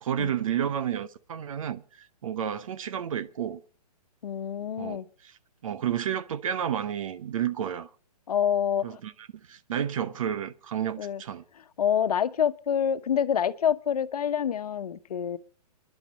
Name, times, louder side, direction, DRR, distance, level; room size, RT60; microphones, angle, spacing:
voice 1, 0.0-3.6 4.8-5.0 5.6-7.9 8.8-9.1 9.5-11.4, right 9 dB, 55° right, 1.0 m, -31 dB
voice 2, 4.2-5.1 8.3-9.0 11.0-11.2 11.8-15.4, left 8 dB, 70° left, 1.1 m, -27 dB
30.0 x 11.0 x 4.2 m
hypercardioid pair, 155°, 20 cm